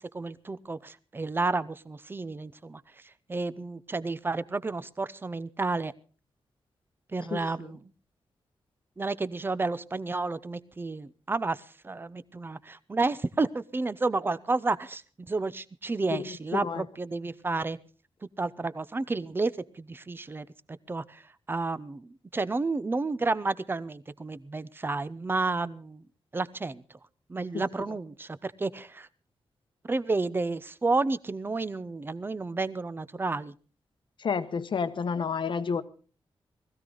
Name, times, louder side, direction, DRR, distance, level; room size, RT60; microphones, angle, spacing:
voice 1, 0.0-2.8 3.3-5.9 7.1-7.8 9.0-17.8 18.4-19.5 19.8-20.5 20.9-21.2 21.5-26.0 26.3-26.8 27.3-29.1 29.9-33.5, right 3 dB, 25° right, 0.6 m, -31 dB
voice 2, 16.1-16.8 27.5-27.6 34.2-35.8, left 6 dB, 60° left, 1.0 m, -30 dB
20.0 x 15.0 x 3.9 m
wide cardioid pair, 170°, 9 cm